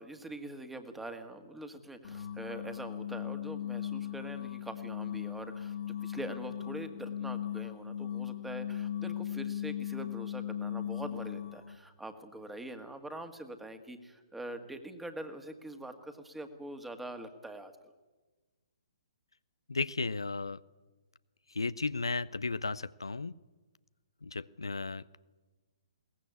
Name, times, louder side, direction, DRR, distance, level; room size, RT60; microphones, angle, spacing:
voice 1, 0.0-17.9, right 1 dB, 5° right, 8 dB, 1.8 m, -44 dB
sound 1, 2.0-11.8, left 10 dB, 55° left, 1.9 m, -38 dB
voice 2, 19.7-20.6 21.5-23.4 24.2-25.1, left 3 dB, 75° left, 16 dB, 0.6 m, -34 dB
21.5 x 18.0 x 8.3 m, 1.2 s
figure-of-eight pair, 130°, 3 cm